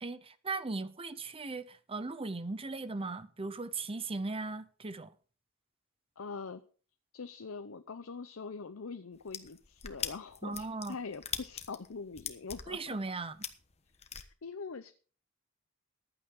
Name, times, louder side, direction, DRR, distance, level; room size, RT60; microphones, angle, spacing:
voice 1, 0.0-5.1 10.4-11.0 12.7-13.4, right 3 dB, 25° right, 0.7 m, -38 dB
voice 2, 6.2-6.6 7.1-12.9 14.1-14.9, left 4 dB, 70° left, 0.7 m, -43 dB
sound 1, 9.2-14.2, left 7 dB, 30° left, 1.2 m, -40 dB
15.0 x 11.0 x 3.8 m
head